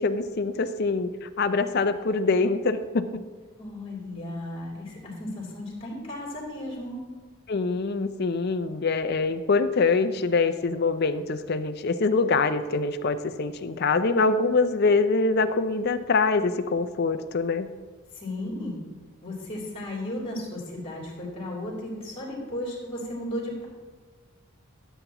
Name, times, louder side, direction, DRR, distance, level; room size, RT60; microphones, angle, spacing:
voice 1, 0.0-3.1 7.5-17.7, left 4 dB, 50° left, 10 dB, 0.5 m, -24 dB
voice 2, 3.6-7.0 18.1-18.8 19.2-23.6, left 1 dB, 30° left, -4 dB, 3.1 m, -35 dB
13.5 x 8.1 x 3.0 m, 1.4 s
head